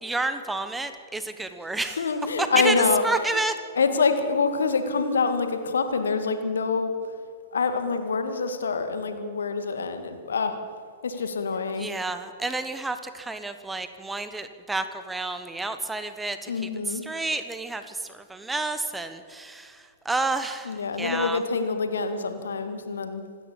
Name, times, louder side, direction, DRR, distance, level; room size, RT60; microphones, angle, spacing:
voice 1, 0.0-2.0 2.4-2.7 3.0-3.6 11.8-16.5 16.9-21.4, right 2 dB, 5° right, 10 dB, 1.3 m, -30 dB
voice 2, 1.8-3.4 3.7-6.9 7.5-10.6 11.0-11.9 16.5-17.1 20.6-23.3, left 4 dB, 70° left, 8 dB, 2.1 m, -26 dB
26.0 x 13.5 x 7.5 m, 2.2 s
figure-of-eight pair, 105°, 0 cm